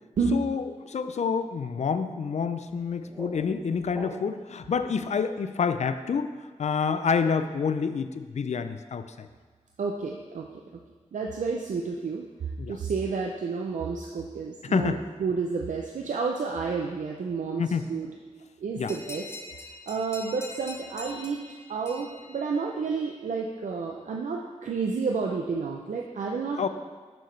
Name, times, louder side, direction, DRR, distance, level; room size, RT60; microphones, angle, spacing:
voice 1, 0.3-6.3 6.6-9.3 12.6-12.8 14.6-15.0 17.6-17.8 18.8-18.9 26.6-26.7, left 6 dB, 65° left, 10 dB, 0.4 m, -28 dB
sound 1, 2.7-4.6, right 1 dB, 20° right, 0.9 m, -43 dB
voice 2, 9.8-10.5 11.1-12.2 12.7-17.6 17.9-18.1 18.6-19.3 19.9-21.4 21.7-26.7, right 4 dB, 90° right, 0 dB, 0.4 m, -30 dB
sound 2, 18.9-23.1, left 2 dB, 20° left, 0.6 m, -44 dB
6.7 x 5.9 x 3.2 m, 1.4 s
wide cardioid pair, 80°, 13 cm